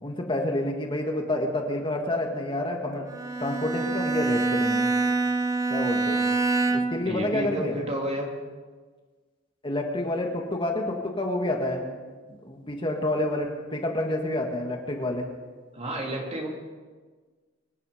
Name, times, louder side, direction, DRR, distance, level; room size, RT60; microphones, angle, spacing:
voice 1, 0.0-3.1 3.4-4.9 5.7-6.2 6.7-7.8 9.6-11.9 12.4-15.3, left 1 dB, 25° left, 1 dB, 1.8 m, -28 dB
Bowed string instrument, 3.1-7.1, right 3 dB, 15° right, 0.9 m, -25 dB
voice 2, 7.0-8.3 15.7-16.5, right 1 dB, 35° right, 0 dB, 3.1 m, -30 dB
25.0 x 10.5 x 5.1 m, 1.4 s
head